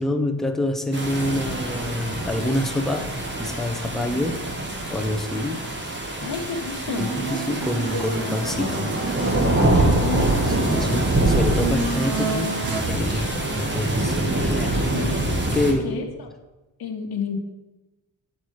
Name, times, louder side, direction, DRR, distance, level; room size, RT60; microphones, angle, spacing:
voice 1, 0.0-4.5 4.9-5.7 7.0-9.0 9.6-10.0 10.6-15.0 15.5-16.0, left 1 dB, ahead, 3 dB, 0.5 m, -27 dB
sound 1, 0.9-15.7, right 1 dB, 30° right, 1.1 m, -25 dB
voice 2, 6.2-7.1 9.8-10.3 14.9-15.2 15.8-16.3 16.8-17.4, left 5 dB, 70° left, 4 dB, 1.1 m, -30 dB
sound 2, 6.9-12.8, right 3 dB, 65° right, 1.5 m, -30 dB
8.8 x 4.6 x 4.6 m, 1.1 s
wide cardioid pair, 130°, 39 cm